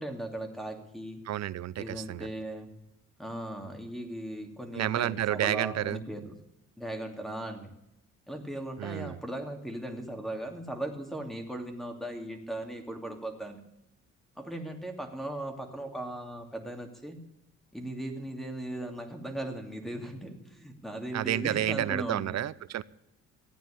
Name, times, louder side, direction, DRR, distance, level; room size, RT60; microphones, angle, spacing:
voice 1, 0.0-1.2 1.8-2.7 3.2-6.3 6.8-7.7 8.3-13.6 14.4-17.2 17.7-22.3, right 1 dB, ahead, 4 dB, 2.7 m, -38 dB
voice 2, 1.3-2.3 4.7-6.0 8.8-9.2 21.1-22.8, right 12 dB, 60° right, 19 dB, 0.7 m, -30 dB
14.5 x 9.3 x 8.6 m, 0.85 s
cardioid pair, 90°, 30 cm